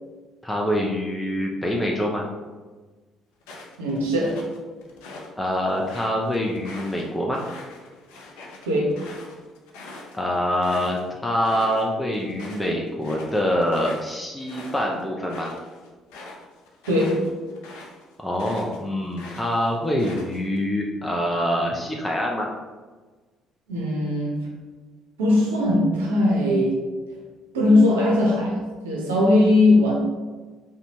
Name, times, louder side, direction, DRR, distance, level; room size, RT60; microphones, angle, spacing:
voice 1, 0.4-2.3 5.4-7.4 10.1-15.5 18.2-22.5, equal, 10° left, -1 dB, 0.4 m, -25 dB
sound 1, 3.4-5.3 5.7-11.0 11.3-11.8 12.1-18.8 19.1-20.6, left 2 dB, 80° left, 0.4 m, -43 dB
voice 2, 3.8-4.4 8.6-8.9 16.9-17.2 23.7-24.4 25.2-26.8 27.5-29.9, left 1 dB, 90° right, -3 dB, 0.6 m, -19 dB
2.7 x 2.1 x 2.8 m, 1.3 s
hypercardioid pair, 55°, 0 cm